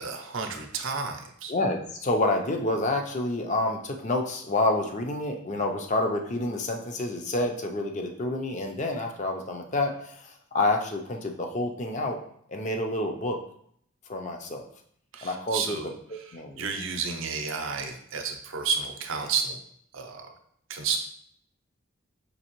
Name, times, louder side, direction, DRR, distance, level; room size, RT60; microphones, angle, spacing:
voice 1, 0.0-1.5 15.1-15.9 16.6-19.6 19.9-20.3 20.7-21.0, right 5 dB, 70° right, 4 dB, 0.6 m, -31 dB
voice 2, 1.5-12.2 12.5-13.4 14.1-14.7 15.2-16.7, left 2 dB, 35° left, 4 dB, 0.5 m, -28 dB
5.3 x 2.8 x 2.9 m, 0.67 s
head